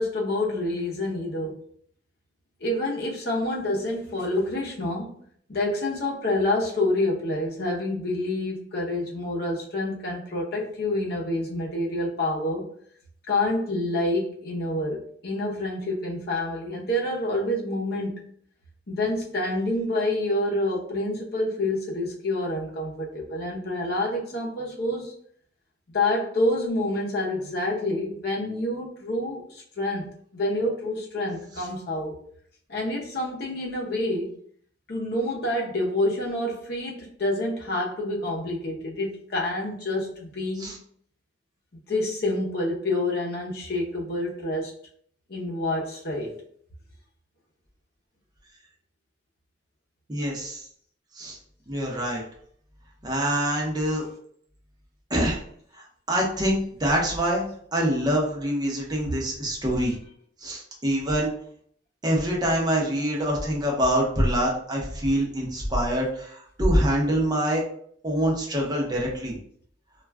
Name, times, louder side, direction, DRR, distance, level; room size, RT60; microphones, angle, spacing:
voice 1, 0.0-1.6 2.6-5.2 5.5-12.7 13.3-18.1 18.9-25.1 25.9-32.1 32.7-34.3 34.9-40.7 41.9-44.7 45.3-46.4, left 1 dB, 60° left, -2 dB, 0.7 m, -27 dB
voice 2, 50.1-50.7 51.1-51.4 51.7-52.2 53.0-54.0 55.1-55.4 55.7-57.4 57.7-59.9 60.4-61.3 62.0-67.6 68.0-69.4, equal, 20° right, -2 dB, 0.7 m, -25 dB
2.4 x 2.2 x 3.3 m, 0.62 s
head